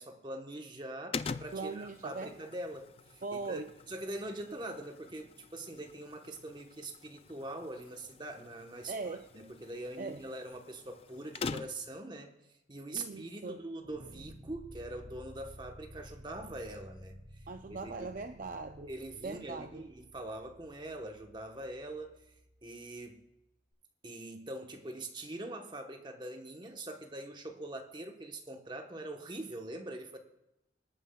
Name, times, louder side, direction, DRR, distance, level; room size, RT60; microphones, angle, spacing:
voice 1, 0.0-3.6 3.9-12.3 12.7-18.1 18.9-22.2 22.6-23.3 24.0-30.2, right 1 dB, 25° right, 4 dB, 1.0 m, -43 dB
sound 1, 1.1-12.0, left 4 dB, 30° left, 0.3 m, -45 dB
voice 2, 1.5-2.3 3.2-3.7 8.9-9.3 10.0-10.2 12.9-13.6 17.5-18.9 19.2-19.8, right 3 dB, 45° right, 7 dB, 0.4 m, -40 dB
sound 2, 13.8-22.9, equal, 80° left, 5.4 m, -54 dB
24.5 x 9.3 x 2.3 m, 0.91 s
head